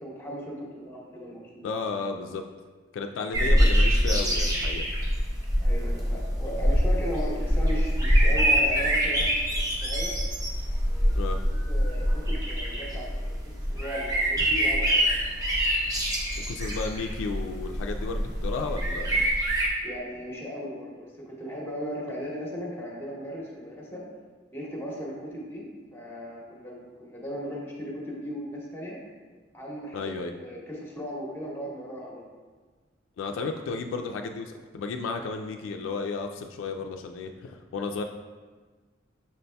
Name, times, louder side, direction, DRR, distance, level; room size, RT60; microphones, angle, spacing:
voice 1, 0.0-1.7 5.6-9.3 9.8-10.1 10.9-11.1 11.6-13.3 13.7-15.1 19.8-24.0 24.5-29.0 29.5-32.2, equal, 10° left, -3 dB, 0.9 m, -37 dB
voice 2, 1.6-2.4 2.9-4.9 11.2-11.4 16.5-19.3 29.9-30.3 33.2-38.0, left 4 dB, 90° left, 4 dB, 0.3 m, -33 dB
sound 1, 3.3-19.7, equal, 20° right, 0.7 m, -25 dB
6.0 x 4.0 x 2.2 m, 1.4 s
head